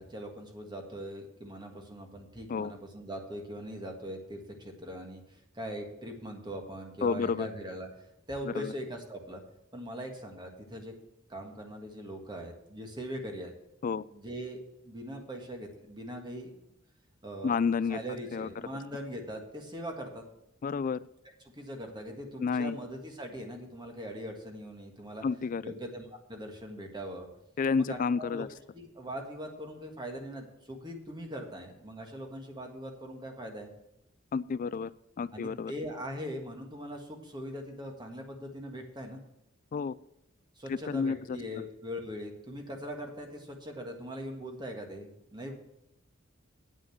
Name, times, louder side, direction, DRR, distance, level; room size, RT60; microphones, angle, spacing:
voice 1, 0.0-7.9 8.3-9.4 9.7-10.9 11.3-13.5 14.1-16.5 17.2-17.6 17.9-20.2 21.5-25.2 25.6-27.3 27.8-28.4 28.9-33.7 35.3-39.2 40.6-45.5, equal, 20° right, 3 dB, 1.6 m, -41 dB
voice 2, 7.0-7.5 8.4-8.7 13.8-14.1 17.4-18.0 18.3-18.5 20.6-21.0 22.4-22.8 25.2-25.6 27.6-28.5 34.3-34.9 35.2-35.7 39.7-39.9 40.7-41.4, left 5 dB, 40° left, 18 dB, 0.3 m, -30 dB
9.0 x 6.4 x 7.8 m, 0.84 s
head